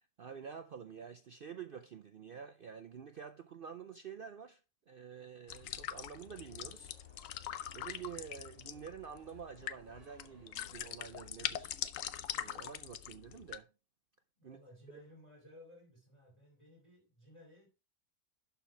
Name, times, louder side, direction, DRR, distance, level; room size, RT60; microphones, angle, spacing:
voice 1, 0.0-4.6 4.9-7.0 7.7-11.7 12.3-13.7 14.4-14.6 14.9-15.0, right 7 dB, 70° right, 0.5 m, -48 dB
sound 1, 5.5-13.6, left 10 dB, 65° left, 0.9 m, -43 dB
sound 2, 6.1-11.1, equal, 25° right, 1.7 m, -65 dB
voice 2, 14.4-17.7, left 1 dB, 20° left, 2.7 m, -58 dB
11.5 x 4.5 x 4.5 m
omnidirectional pair, 1.6 m